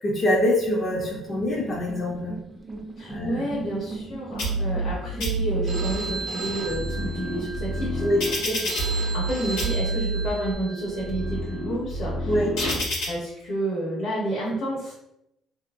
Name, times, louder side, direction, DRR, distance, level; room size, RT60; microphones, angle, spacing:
voice 1, 0.0-2.3 3.1-3.5 8.0-8.2 12.3-12.5, left 1 dB, 35° left, -4 dB, 0.6 m, -24 dB
sound 1, 0.5-10.5, right 2 dB, 15° right, 0.5 m, -40 dB
voice 2, 2.9-8.1 8.8-12.7 13.1-14.9, right 1 dB, 60° left, -6 dB, 0.9 m, -30 dB
sound 2, 4.4-4.9 5.2-5.9 6.5-9.3 9.6-10.3 10.9-13.1, right 1 dB, 90° left, 0.9 m, -28 dB
Telephone, 5.7-11.6, right 3 dB, 50° right, 0.7 m, -36 dB
2.8 x 2.7 x 2.5 m, 0.86 s
cardioid pair, 130°, 0 cm